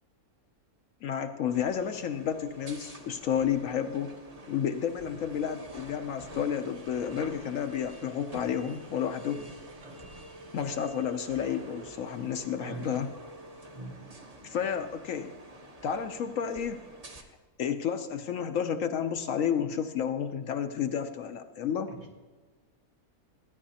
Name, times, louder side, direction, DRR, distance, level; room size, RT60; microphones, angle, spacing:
voice 1, 1.0-4.1 4.5-9.4 10.5-13.1 14.4-15.3 15.8-16.8 17.6-21.9, left 8 dB, 65° left, 8 dB, 0.9 m, -31 dB
sound 1, 1.5-17.2, right 1 dB, 30° right, 0.9 m, -48 dB
voice 2, 12.6-13.0 13.7-13.9 21.9-22.0, right 3 dB, 75° right, -3 dB, 2.6 m, -42 dB
16.0 x 10.5 x 2.8 m, 1.4 s
omnidirectional pair, 1.6 m